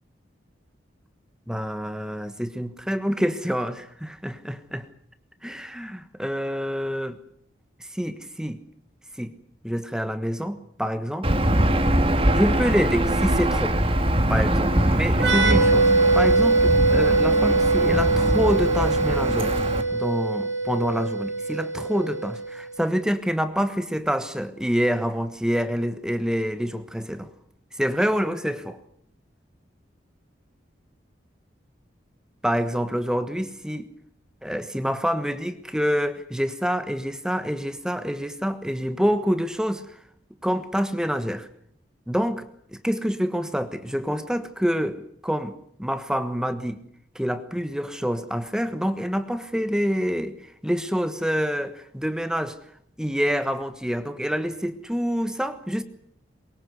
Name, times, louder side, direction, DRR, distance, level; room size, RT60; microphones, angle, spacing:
voice 1, 1.5-4.9 5.4-7.2 7.8-8.6 9.2-9.3 9.6-11.4 12.3-13.8 14.3-19.5 19.9-27.3 27.7-28.8 32.4-33.9 34.4-40.0 40.4-41.5 42.1-45.5 45.8-46.8 47.1-52.6 53.0-55.8, equal, 5° right, 10 dB, 1.3 m, -27 dB
Aircraft / Engine, 11.2-19.8, right 1 dB, 30° right, 2.5 m, -23 dB
sound 1, 15.1-22.7, right 3 dB, 90° right, 6.2 m, -22 dB
23.5 x 22.0 x 8.0 m, 0.68 s
head